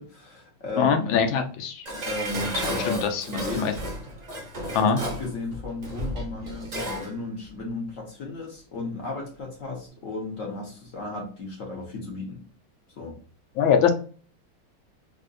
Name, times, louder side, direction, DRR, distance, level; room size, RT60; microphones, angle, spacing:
voice 1, 0.0-1.2 2.1-3.8 4.8-12.4 13.0-13.2, left 2 dB, 50° left, -1 dB, 1.2 m, -34 dB
voice 2, 0.8-1.9 2.7-3.2 3.5-3.7 4.7-5.0 13.6-13.9, left 7 dB, 80° left, 5 dB, 1.4 m, -22 dB
Dishes pots and pans, 1.8-7.1 7.5-7.6, right 1 dB, 55° right, 0.4 m, -33 dB
3.8 x 2.6 x 2.4 m, 0.40 s
omnidirectional pair, 2.1 m